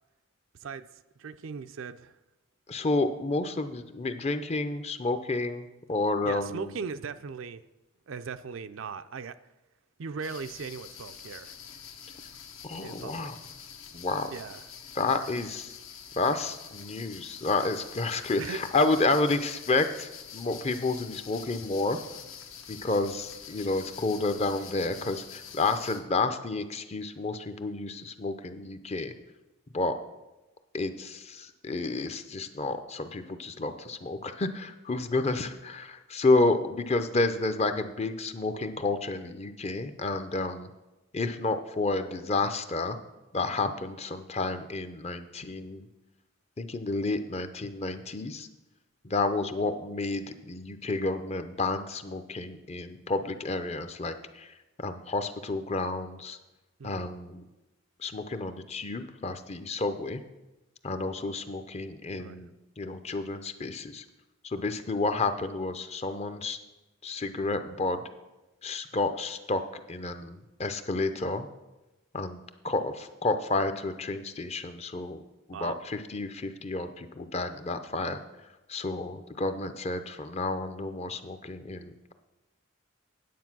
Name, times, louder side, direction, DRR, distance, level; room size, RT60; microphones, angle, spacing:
voice 1, 1.2-2.1 6.2-7.6 8.1-9.4 10.0-11.5 12.8-13.3 14.3-14.7 18.4-18.6 56.8-57.1 62.2-62.5 75.5-75.8, right 5 dB, 65° right, 0.4 m, -38 dB
voice 2, 2.7-6.7 12.6-13.4 13.9-14.3 15.0-15.7 16.2-22.0 22.7-29.1 29.7-30.0 30.7-40.7 41.1-43.0 43.3-45.9 46.6-48.5 49.0-54.5 54.8-56.4 56.8-57.4 58.0-60.2 60.8-62.5 62.8-64.0 64.4-66.6 67.0-68.0 68.6-69.6 69.9-71.5 72.1-72.4 72.6-75.2 75.5-78.2 78.7-82.1, left 3 dB, 30° left, 0.6 m, -30 dB
sound 1, 10.2-26.0, left 7 dB, 70° left, 1.1 m, -46 dB
9.4 x 8.1 x 6.0 m
head